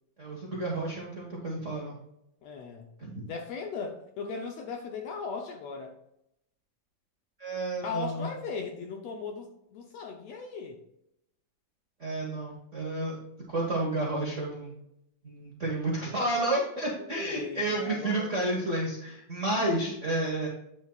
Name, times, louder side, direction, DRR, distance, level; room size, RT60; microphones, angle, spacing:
voice 1, 0.2-2.0 3.0-3.3 7.4-8.3 12.0-13.1 13.5-14.7 15.2-20.5, right 2 dB, 50° right, -4 dB, 0.9 m, -31 dB
voice 2, 2.4-2.9 3.3-5.9 7.8-10.8 17.1-18.4, left 5 dB, 70° left, 3 dB, 1.7 m, -38 dB
9.5 x 6.8 x 2.4 m, 0.80 s
omnidirectional pair, 3.7 m